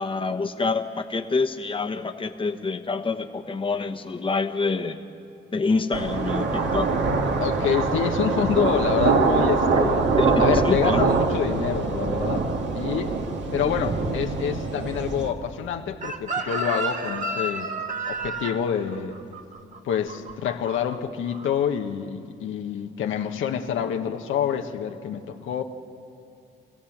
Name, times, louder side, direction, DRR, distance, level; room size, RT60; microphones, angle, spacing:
voice 1, 0.0-5.0 5.5-7.0 10.2-11.0, left 4 dB, 25° left, 5 dB, 1.2 m, -26 dB
sound 1, 5.9-15.3, right 4 dB, 65° right, 1.9 m, -23 dB
voice 2, 7.4-10.1 10.4-13.2 13.5-17.7 18.1-19.2 19.8-25.6, left 8 dB, 80° left, 4 dB, 1.2 m, -27 dB
Chicken rooster, 16.0-21.0 21.2-21.6, right 2 dB, 40° right, 1.7 m, -31 dB
26.0 x 16.0 x 7.3 m, 2.7 s
cardioid pair, 90°, 20 cm